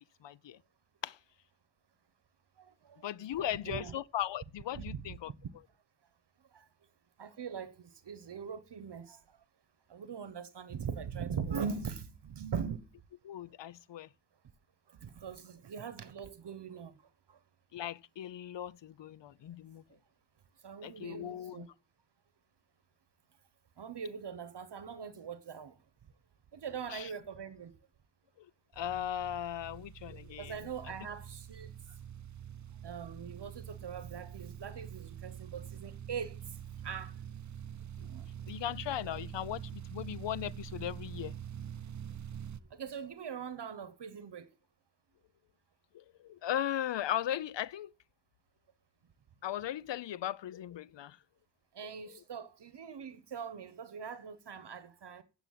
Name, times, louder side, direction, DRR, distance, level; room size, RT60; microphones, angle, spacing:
voice 1, 0.2-0.6 1.0-1.2 3.0-5.3 13.2-14.1 17.7-19.8 20.8-21.6 26.9-27.1 28.4-28.5 28.8-30.5 38.5-41.3 45.9-47.9 49.4-51.2, left 11 dB, 70° left, 0.6 m, -37 dB
voice 2, 2.6-3.9 4.8-5.0 6.5-6.7 7.2-9.4 9.9-12.9 14.9-16.9 17.3-17.4 19.9-20.0 20.6-21.7 23.8-25.8 26.5-27.7 30.4-31.7 32.8-36.6 36.8-37.1 38.0-38.3 42.7-44.5 51.7-55.2, right 6 dB, 65° right, 1.1 m, -42 dB
sound 1, 28.7-42.6, right 9 dB, 40° right, 0.6 m, -45 dB
9.1 x 7.9 x 7.4 m
cardioid pair, 60°, 45 cm